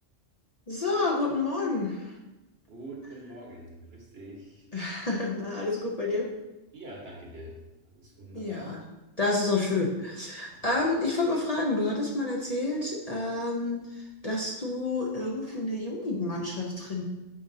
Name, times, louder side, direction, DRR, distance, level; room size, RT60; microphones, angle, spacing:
voice 1, 0.7-2.1 4.7-6.3 8.3-8.8 9.2-17.0, left 2 dB, 35° left, -2 dB, 0.8 m, -29 dB
voice 2, 2.7-4.7 6.7-7.6 7.8-8.7 10.5-10.7, right 1 dB, 55° right, -1 dB, 1.5 m, -44 dB
8.5 x 5.1 x 2.7 m, 1.0 s
omnidirectional pair, 1.3 m